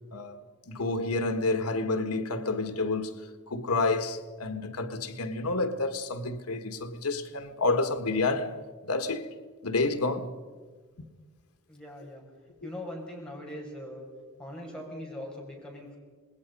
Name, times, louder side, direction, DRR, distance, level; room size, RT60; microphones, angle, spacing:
voice 1, 0.7-3.2 3.5-8.6 8.8-9.3 9.6-10.3, left 3 dB, 85° left, 1.6 m, -29 dB
voice 2, 11.7-12.2 12.6-14.1 14.4-16.0, left 1 dB, 5° left, 5.7 m, -41 dB
27.5 x 20.5 x 5.4 m
head